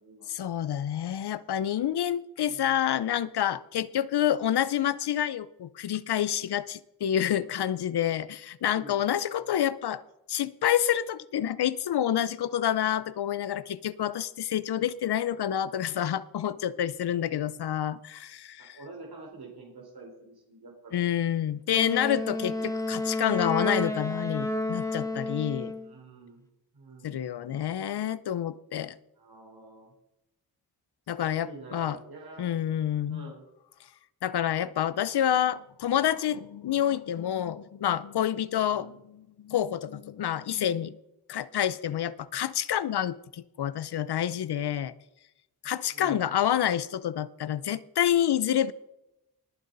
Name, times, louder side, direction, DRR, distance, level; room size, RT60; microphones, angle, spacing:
voice 1, 0.3-10.0 10.3-18.8 20.9-25.7 27.0-29.0 31.1-32.0 32.4-33.3 34.2-41.0 41.3-44.9 45.6-48.7, left 10 dB, 85° left, 17 dB, 0.7 m, -28 dB
voice 2, 2.5-2.8 8.7-9.0 9.4-9.5 14.7-14.9 18.6-21.0 25.8-26.5 26.7-27.2 29.1-29.9 31.2-32.5 33.1-33.5 36.7-36.9 38.7-38.9 45.9-46.4, right 3 dB, 75° right, -1 dB, 3.9 m, -48 dB
Wind instrument woodwind instrument, 21.7-25.9, left 2 dB, 10° left, 1.8 m, -31 dB
19.5 x 9.4 x 4.0 m, 0.88 s
wide cardioid pair, 85°, 38 cm